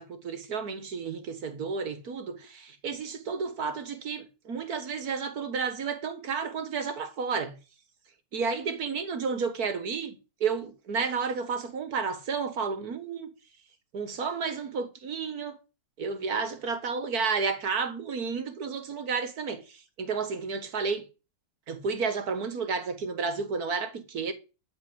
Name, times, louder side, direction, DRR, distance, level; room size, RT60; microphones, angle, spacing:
voice 1, 0.0-7.6 8.3-13.3 13.9-15.6 16.0-21.0 21.7-24.3, right 5 dB, 70° right, 2.1 m, -31 dB
13.0 x 4.6 x 8.0 m
omnidirectional pair, 1.6 m